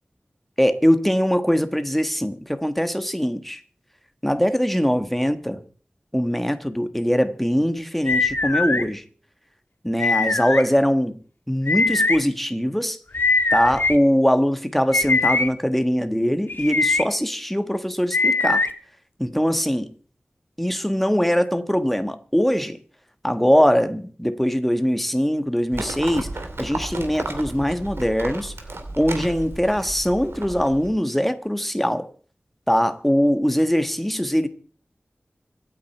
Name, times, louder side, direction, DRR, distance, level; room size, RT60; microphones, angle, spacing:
voice 1, 0.6-3.6 4.2-5.6 6.1-9.0 9.8-13.0 13.5-18.6 19.2-19.9 20.6-22.8 23.2-28.5 29.0-32.1 32.7-34.5, equal, 5° left, 1.4 m, -22 dB
sound 1, 8.1-8.8 10.0-10.6 11.7-12.2 13.1-14.0 14.9-15.5 16.5-17.0 18.1-18.7, left 3 dB, 60° left, 1.6 m, -21 dB
Livestock farm animals working animals, 25.7-30.9, right 2 dB, 80° right, 2.8 m, -33 dB
25.5 x 9.1 x 4.5 m
wide cardioid pair, 70°, 4 cm